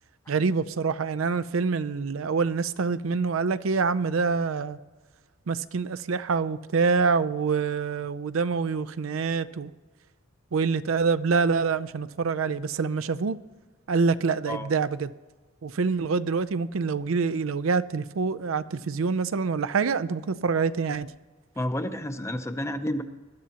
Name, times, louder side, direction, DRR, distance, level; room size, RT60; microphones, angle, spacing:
voice 1, 0.3-4.8 5.5-9.7 10.5-13.4 13.9-15.1 15.6-21.1, right 5 dB, 90° right, 0.5 m, -26 dB
voice 2, 21.6-23.0, left 1 dB, 15° left, 0.6 m, -30 dB
20.5 x 12.5 x 2.9 m
head